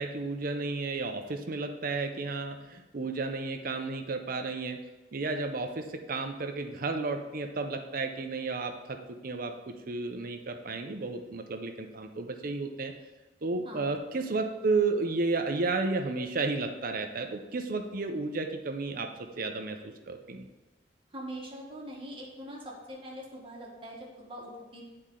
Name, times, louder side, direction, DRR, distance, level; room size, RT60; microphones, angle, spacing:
voice 1, 0.0-4.8 5.1-12.9 13.4-19.1 19.4-20.5, right 3 dB, 50° right, 6 dB, 0.6 m, -32 dB
voice 2, 13.6-14.0 21.1-24.8, equal, 30° right, -2 dB, 1.4 m, -43 dB
8.3 x 4.4 x 3.7 m, 1.2 s
head